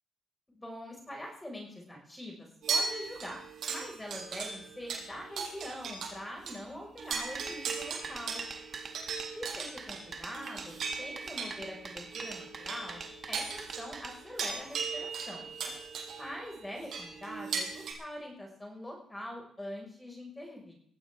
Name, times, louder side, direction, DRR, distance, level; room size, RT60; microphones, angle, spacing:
voice 1, 0.5-3.4 3.7-8.4 9.3-13.0 13.3-15.5 16.1-20.7, equal, 10° left, 0 dB, 5.4 m, -43 dB
sound 1, 2.6-6.2 6.5-6.6 7.0-17.9, right 5 dB, 65° right, 5.9 m, -38 dB
sound 2, 7.1-14.5, right 5 dB, 45° right, 2.1 m, -44 dB
19.5 x 16.0 x 3.7 m, 0.63 s
cardioid pair, 90°, 0 cm